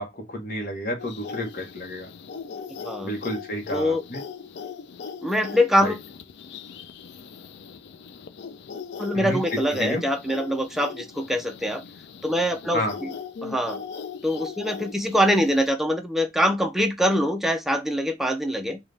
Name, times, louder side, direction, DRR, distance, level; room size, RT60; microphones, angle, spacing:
voice 1, 0.0-2.1 3.0-4.2 5.8-5.9 9.1-9.4 9.8-10.0 12.7-13.0, equal, 50° left, 0.9 m, -30 dB
sound 1, 1.0-15.7, left 6 dB, 70° left, 0.4 m, -39 dB
voice 2, 2.8-3.2 3.7-4.0 5.2-6.0 9.0-11.8 12.2-13.1 13.4-13.8 14.2-18.8, equal, ahead, 0.4 m, -24 dB
3.3 x 2.3 x 3.8 m
head